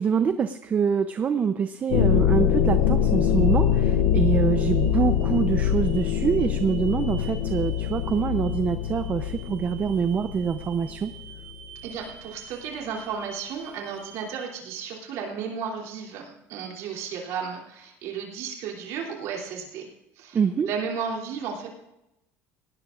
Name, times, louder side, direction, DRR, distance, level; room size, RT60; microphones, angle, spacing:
voice 1, 0.0-11.1 20.3-20.7, right 6 dB, 30° right, 10 dB, 0.6 m, -25 dB
sound 1, 1.9-11.4, left 8 dB, 85° left, 0.6 m, -24 dB
sound 2, 2.7-14.5, right 8 dB, 85° right, 6.3 m, -49 dB
voice 2, 11.8-19.9 20.2-20.4 20.7-21.7, right 6 dB, 70° right, -1 dB, 3.0 m, -33 dB
19.5 x 18.0 x 2.5 m, 0.89 s
cardioid pair, 125°, 6 cm